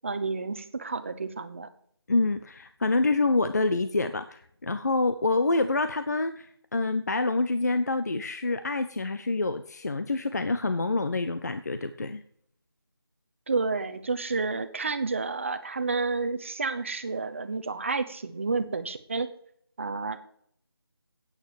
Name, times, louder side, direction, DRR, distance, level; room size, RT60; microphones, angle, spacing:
voice 1, 0.0-1.7 13.5-19.3 19.8-20.2, right 4 dB, 30° right, 10 dB, 0.8 m, -30 dB
voice 2, 2.1-12.2, left 3 dB, 40° left, 10 dB, 0.6 m, -27 dB
9.0 x 8.8 x 7.0 m, 0.64 s
figure-of-eight pair, 165°, 13 cm